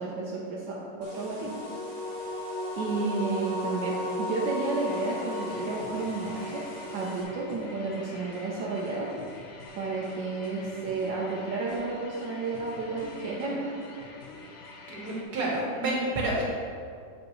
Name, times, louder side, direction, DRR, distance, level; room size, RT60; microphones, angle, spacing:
voice 1, 0.0-1.5 2.8-6.7 6.9-9.1 9.7-13.7, right 3 dB, 80° right, -5 dB, 1.5 m, -32 dB
sound 1, 1.0-7.2, left 1 dB, 30° right, 0.8 m, -35 dB
sound 2, 4.8-15.2, left 3 dB, 85° left, 0.5 m, -46 dB
voice 2, 14.9-16.4, right 1 dB, 60° right, -3 dB, 1.8 m, -29 dB
8.4 x 4.8 x 3.1 m, 2.2 s
omnidirectional pair, 2.0 m